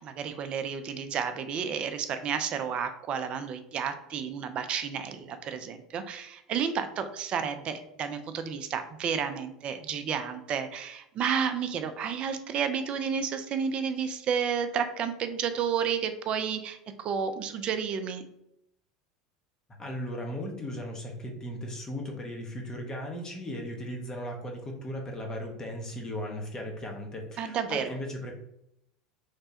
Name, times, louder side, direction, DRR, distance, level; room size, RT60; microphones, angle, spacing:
voice 1, 0.0-18.2 27.4-27.8, right 7 dB, 40° right, 8 dB, 0.4 m, -31 dB
voice 2, 19.8-28.3, equal, 25° left, 1 dB, 0.7 m, -37 dB
3.2 x 2.2 x 2.8 m, 0.79 s
hypercardioid pair, 75°, 3 cm